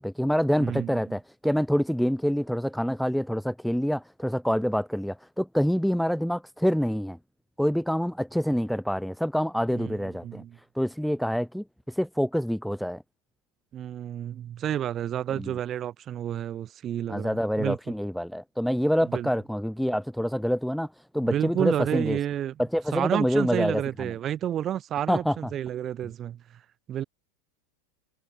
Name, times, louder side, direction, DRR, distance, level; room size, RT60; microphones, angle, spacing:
voice 1, 0.0-7.2 7.6-10.4 10.8-13.0 15.4-15.5 17.1-20.9 21.1-22.2 22.6-24.1 25.1-25.4, equal, ahead, 0.7 m, -26 dB
voice 2, 0.6-1.2 9.7-10.0 10.2-10.6 13.7-17.8 19.1-19.3 21.2-22.5 22.9-26.4 26.9-27.0, right 10 dB, 35° right, 0.6 m, -30 dB
hypercardioid pair, 100°, 0 cm